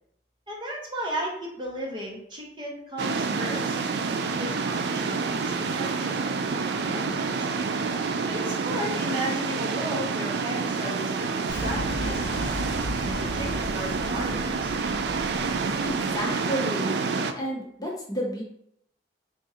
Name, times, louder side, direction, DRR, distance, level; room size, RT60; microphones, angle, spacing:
voice 1, 0.5-3.8 4.4-7.5 8.3-12.2 13.0-14.8, equal, 25° right, -2 dB, 0.8 m, -35 dB
sound 1, 3.0-17.3, right 4 dB, 65° right, 0.3 m, -28 dB
Boom, 11.5-16.4, left 1 dB, 85° left, 0.6 m, -36 dB
voice 2, 15.8-16.9 17.3-18.4, equal, 20° left, -3 dB, 0.7 m, -31 dB
3.6 x 2.5 x 4.1 m, 0.73 s
head